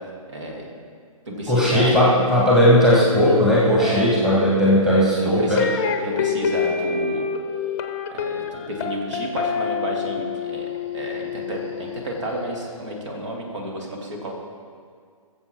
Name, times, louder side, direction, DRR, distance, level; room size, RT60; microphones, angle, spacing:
voice 1, 0.3-0.7 1.3-2.0 3.8-4.1 5.1-5.7 6.0-7.3 8.1-14.3, right 1 dB, 55° right, 0 dB, 2.5 m, -31 dB
voice 2, 1.3-5.6, equal, ahead, -6 dB, 1.6 m, -17 dB
sound 1, 5.6-12.7, left 6 dB, 25° left, 0.8 m, -27 dB
20.0 x 7.5 x 4.5 m, 2.1 s
figure-of-eight pair, 130°, 18 cm